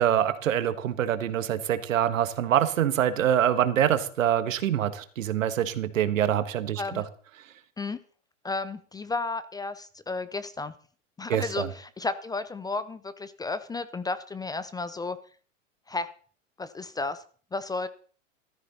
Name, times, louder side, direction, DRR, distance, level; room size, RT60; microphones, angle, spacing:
voice 1, 0.0-7.0 11.3-11.7, right 10 dB, 80° right, 12 dB, 1.5 m, -25 dB
voice 2, 8.4-10.7 11.2-15.2 15.9-16.1 16.6-17.2 17.5-17.9, left 3 dB, 10° left, 14 dB, 0.5 m, -33 dB
14.5 x 13.0 x 4.2 m, 0.43 s
hypercardioid pair, 105°, 39 cm